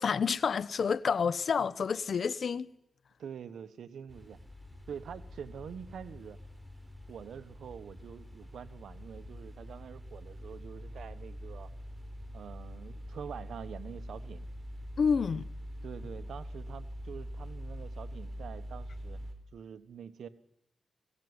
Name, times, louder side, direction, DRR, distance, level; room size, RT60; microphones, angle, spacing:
voice 1, 0.0-2.7 15.0-15.5, left 6 dB, 65° left, 0.9 m, -29 dB
voice 2, 3.2-4.4 4.9-6.4 7.1-11.7 12.3-14.4 15.8-19.2 19.5-20.3, right 7 dB, 85° right, 1.3 m, -45 dB
sound 1, 4.1-19.3, equal, 10° right, 4.4 m, -44 dB
20.5 x 17.0 x 9.8 m
cardioid pair, 75°, 0 cm